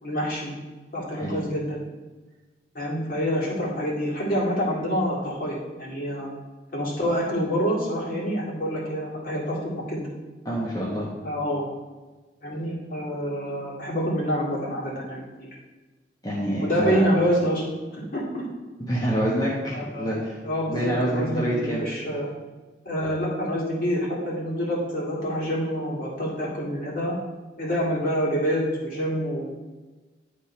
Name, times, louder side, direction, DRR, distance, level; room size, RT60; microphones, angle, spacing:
voice 1, 0.0-0.5 0.9-1.8 2.7-6.3 6.7-10.1 11.2-11.6 12.4-15.5 16.6-17.6 17.9-18.4 19.7-20.1 20.4-22.3 22.8-27.2 27.6-29.6, equal, 50° left, -5 dB, 2.1 m, -27 dB
voice 2, 10.4-11.1 16.2-17.0 18.9-20.4 20.7-21.8, equal, 20° left, -6 dB, 1.1 m, -26 dB
10.0 x 3.6 x 4.3 m, 1.2 s
head